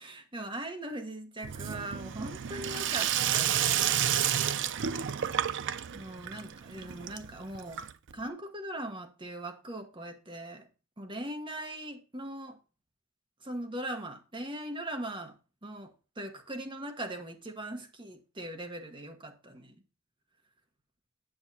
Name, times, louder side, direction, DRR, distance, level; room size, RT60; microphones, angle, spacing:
voice 1, 0.0-3.9 5.9-7.8 8.1-10.7 11.0-12.6 13.4-15.4 15.6-19.7, right 1 dB, 25° right, 1.3 m, -40 dB
Sink (filling or washing), 1.4-8.2, right 9 dB, 60° right, 0.5 m, -31 dB
9.0 x 7.9 x 2.8 m
head